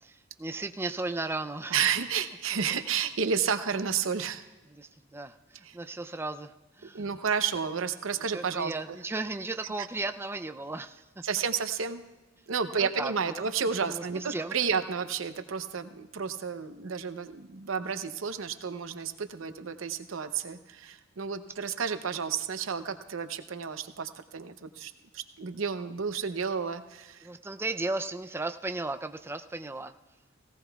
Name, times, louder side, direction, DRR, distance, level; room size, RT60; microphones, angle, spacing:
voice 1, 0.0-1.8 4.7-7.0 8.3-11.2 12.8-13.5 13.9-14.5 27.2-29.9, right 2 dB, 10° right, 7 dB, 0.4 m, -35 dB
voice 2, 1.7-4.4 5.7-5.8 6.9-8.7 11.2-12.0 12.5-27.3, right 6 dB, 90° right, 9 dB, 0.7 m, -31 dB
18.0 x 17.0 x 2.3 m, 1.2 s
head